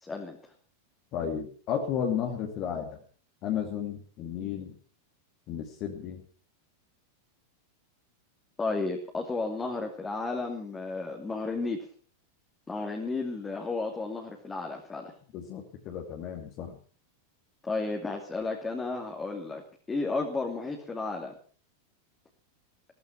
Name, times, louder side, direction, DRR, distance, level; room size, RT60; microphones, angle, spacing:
voice 1, 0.0-0.4 8.6-11.8 12.7-15.1 17.6-19.6 19.9-21.3, left 3 dB, 15° left, 1 dB, 2.8 m, -33 dB
voice 2, 1.1-3.0 3.4-4.7 5.5-6.2 15.3-16.8, left 8 dB, 40° left, 1 dB, 2.7 m, -33 dB
16.0 x 15.0 x 5.9 m, 0.43 s
figure-of-eight pair, 90°, 0 cm